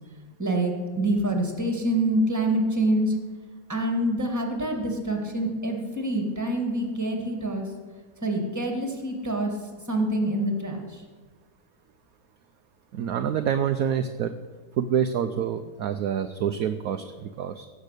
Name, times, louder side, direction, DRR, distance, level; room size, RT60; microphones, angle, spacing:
voice 1, 0.4-3.1 3.7-7.7 8.2-9.5 9.9-11.0, right 1 dB, 10° right, 2 dB, 2.0 m, -26 dB
voice 2, 12.9-14.3 14.8-17.7, right 8 dB, 65° right, 8 dB, 1.0 m, -27 dB
16.5 x 7.3 x 6.7 m, 1.4 s
omnidirectional pair, 1.8 m